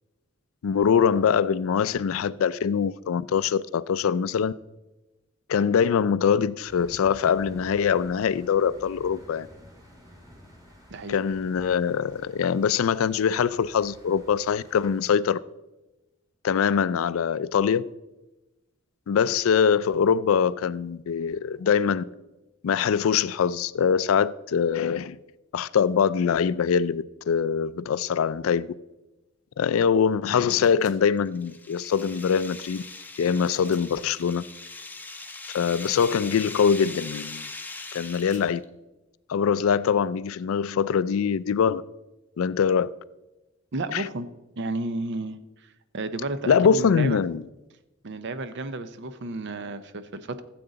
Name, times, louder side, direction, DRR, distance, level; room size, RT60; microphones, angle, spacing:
voice 1, 0.6-4.5 5.5-9.5 11.1-15.4 16.4-17.9 19.1-22.0 22.6-25.2 25.5-28.7 29.6-32.8 33.2-34.4 35.5-37.5 37.9-38.6 39.3-41.8 42.4-42.9 43.9-44.1 46.5-47.4, left 7 dB, 75° left, 0.4 m, -23 dB
sound 1, 6.7-15.1, equal, 20° right, 2.1 m, -50 dB
sound 2, 30.6-31.0 33.4-33.9 35.8-36.2 37.9-38.5, right 4 dB, 35° right, 1.1 m, -51 dB
sound 3, 31.1-38.6, left 3 dB, 10° left, 0.6 m, -40 dB
voice 2, 43.7-44.3 44.6-45.4 45.9-47.2 48.0-50.4, right 2 dB, 60° right, 0.6 m, -32 dB
13.5 x 7.8 x 3.9 m
head